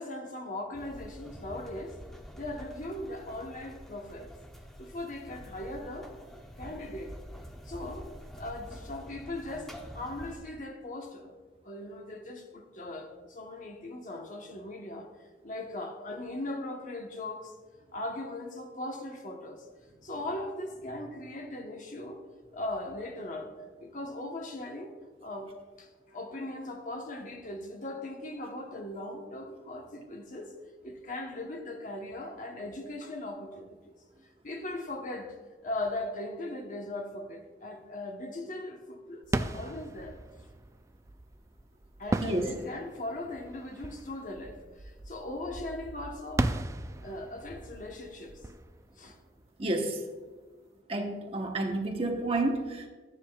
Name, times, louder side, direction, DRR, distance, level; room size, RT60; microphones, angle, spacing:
voice 1, 0.0-2.0 2.3-4.3 4.8-6.1 6.6-7.2 7.6-11.4 11.6-15.1 15.4-17.5 17.9-19.7 20.0-22.3 22.5-23.5 23.8-25.5 25.8-30.6 30.8-33.9 34.4-35.3 35.6-40.2 42.0-46.6 47.0-48.4 49.0-49.2, left 1 dB, 45° left, 1.1 m, -39 dB
sound 1, 0.7-10.4, equal, ahead, 0.8 m, -47 dB
sound 2, 39.2-49.8, right 2 dB, 15° right, 0.3 m, -37 dB
voice 2, 49.6-50.0 50.9-52.9, right 2 dB, 35° right, 0.9 m, -30 dB
12.5 x 10.0 x 2.3 m
head